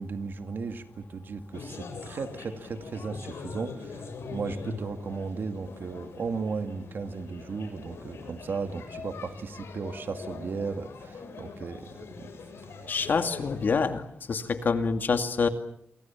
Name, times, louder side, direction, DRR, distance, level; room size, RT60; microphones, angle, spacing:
voice 1, 0.0-12.3, right 4 dB, 55° right, 8 dB, 2.2 m, -35 dB
sound 1, 1.5-13.9, left 4 dB, 85° left, 7.1 m, -43 dB
voice 2, 12.9-14.0 14.3-15.5, left 5 dB, 50° left, 8 dB, 2.3 m, -26 dB
29.5 x 24.5 x 7.4 m, 0.70 s
wide cardioid pair, 180°, 4 cm